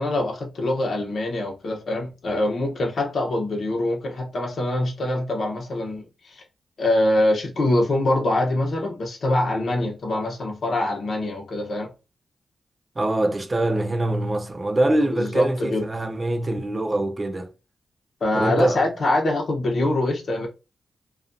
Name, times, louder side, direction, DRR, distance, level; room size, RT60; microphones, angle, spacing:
voice 1, 0.0-6.4 6.8-11.9 15.1-15.8 18.2-20.5, left 1 dB, 70° left, 0.9 m, -24 dB
voice 2, 13.0-17.5 18.3-18.8, right 1 dB, 40° right, 0.5 m, -23 dB
2.4 x 2.3 x 2.5 m
supercardioid pair, 45°, 0 cm